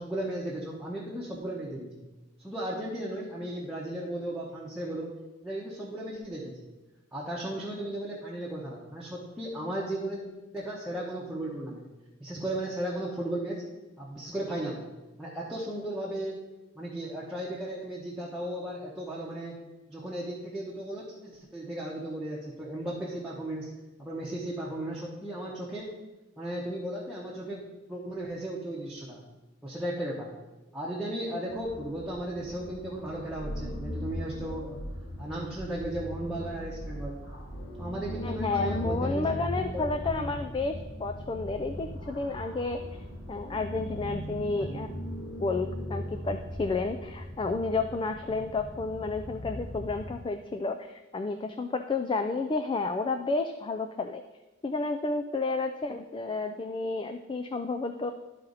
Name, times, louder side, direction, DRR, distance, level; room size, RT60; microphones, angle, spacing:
voice 1, 0.0-2.0 2.4-5.1 5.4-6.7 7.1-10.2 10.5-11.8 12.2-13.6 14.0-14.9 15.2-16.4 16.7-19.6 19.9-23.7 24.0-25.9 26.4-29.2 29.6-30.3 30.7-34.8 35.2-37.2 37.8-39.3 39.7-40.4 44.6-44.8, right 1 dB, 5° right, -6 dB, 1.0 m, -35 dB
sound 1, 31.5-50.1, equal, 70° left, 1.7 m, -38 dB
voice 2, 38.2-40.7 41.0-42.8 43.3-44.9 45.4-54.2 54.6-58.1, left 3 dB, 25° left, 7 dB, 0.3 m, -31 dB
12.0 x 4.2 x 4.0 m, 1.1 s
head